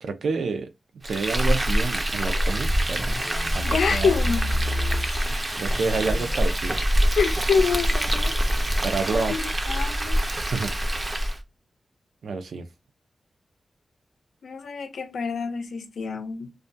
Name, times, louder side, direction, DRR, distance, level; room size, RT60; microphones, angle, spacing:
voice 1, 0.0-0.7 1.0-3.2 3.5-4.1 5.5-6.8 8.8-9.4 10.5-10.7 12.2-12.7, right 4 dB, 90° right, 0.4 m, -28 dB
Frying (food), 1.0-11.4, equal, 30° right, 0.4 m, -25 dB
sound 1, 2.2-10.1, left 1 dB, 40° left, 0.5 m, -33 dB
voice 2, 3.6-4.5 7.2-8.4 8.7-9.4 9.7-10.2 14.4-16.5, left 5 dB, 90° left, 0.4 m, -26 dB
2.2 x 2.2 x 2.5 m
wide cardioid pair, 105°, 0 cm